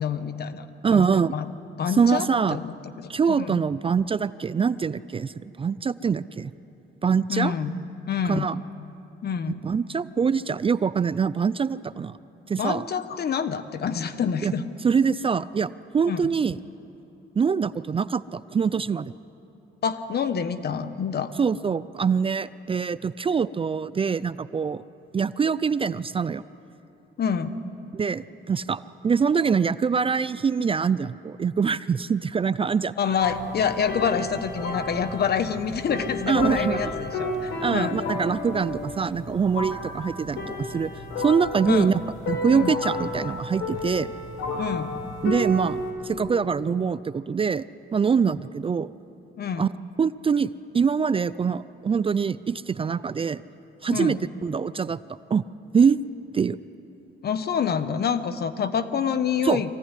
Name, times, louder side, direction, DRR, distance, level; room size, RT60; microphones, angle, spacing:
voice 1, 0.0-0.7 0.9-1.5 1.8-2.9 3.3-3.5 7.3-7.8 8.1-8.5 9.2-9.6 12.6-14.6 16.1-16.2 19.8-21.3 27.2-27.6 33.0-38.0 41.7-42.0 42.5-42.7 44.6-45.0 49.4-49.7 53.9-54.2 57.2-59.7, left 7 dB, 55° left, 11 dB, 1.2 m, -27 dB
voice 2, 0.8-1.4 2.0-2.6 3.1-6.5 7.0-7.5 8.3-8.6 9.6-12.2 12.5-12.8 14.4-14.5 14.8-16.6 17.4-19.1 21.4-24.8 25.1-26.4 27.9-32.9 36.3-37.0 37.6-42.0 42.3-44.1 45.2-47.6 47.9-48.9 49.6-49.7 50.0-53.4 53.8-55.0 55.3-55.4 55.7-56.0 56.3-56.6 59.4-59.6, right 6 dB, 25° right, 16 dB, 0.4 m, -24 dB
sound 1, 33.2-45.9, left 2 dB, 75° left, 4.9 m, -32 dB
23.5 x 15.5 x 9.9 m, 3.0 s
cardioid pair, 90°, 20 cm